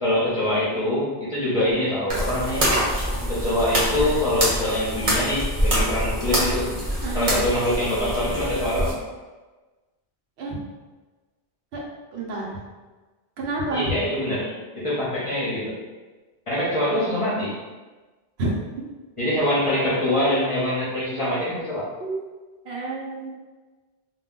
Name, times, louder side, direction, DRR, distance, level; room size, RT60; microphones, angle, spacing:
voice 1, 0.0-2.7 3.3-6.7 7.1-8.9 13.7-15.8 16.5-17.5 19.2-21.9, left 1 dB, 35° left, -8 dB, 0.6 m, -24 dB
sound 1, 2.1-8.9, equal, 35° right, 0.8 m, -25 dB
voice 2, 7.0-7.3 10.4-10.6 11.7-11.8 12.1-12.6 13.4-13.9 18.4-18.5 22.0-22.2 22.6-23.3, right 2 dB, 75° right, -3 dB, 0.9 m, -29 dB
2.3 x 2.2 x 3.6 m, 1.3 s
omnidirectional pair, 1.1 m